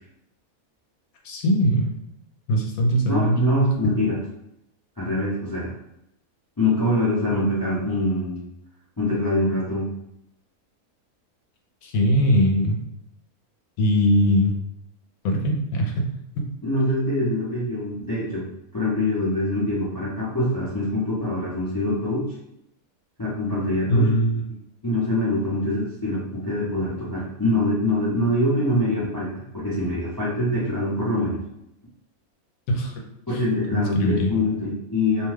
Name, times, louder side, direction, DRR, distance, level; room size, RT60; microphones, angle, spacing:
voice 1, 1.2-1.9 2.5-3.4 11.8-12.8 13.8-14.5 15.2-16.1 23.9-24.4 32.7-33.0 33.3-33.4 33.7-34.3, equal, 80° left, 1 dB, 1.1 m, -21 dB
voice 2, 3.1-4.2 5.0-5.7 6.6-8.4 9.0-9.9 16.6-18.4 18.7-22.2 23.2-24.1 24.8-31.4 33.3-35.3, left 1 dB, 20° left, -9 dB, 0.5 m, -24 dB
2.7 x 2.2 x 3.2 m, 0.80 s
omnidirectional pair, 1.5 m